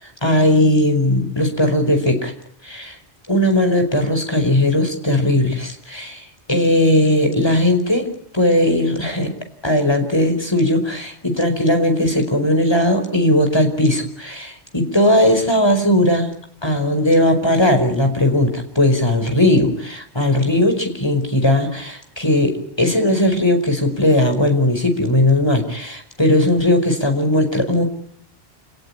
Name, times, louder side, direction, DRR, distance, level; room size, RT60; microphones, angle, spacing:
voice 1, 0.0-2.3 2.6-3.0 3.3-8.1 8.3-9.3 9.6-16.3 16.6-27.8, left 1 dB, 25° left, 5 dB, 4.9 m, -18 dB
27.5 x 18.5 x 10.0 m, 0.66 s
omnidirectional pair, 1.1 m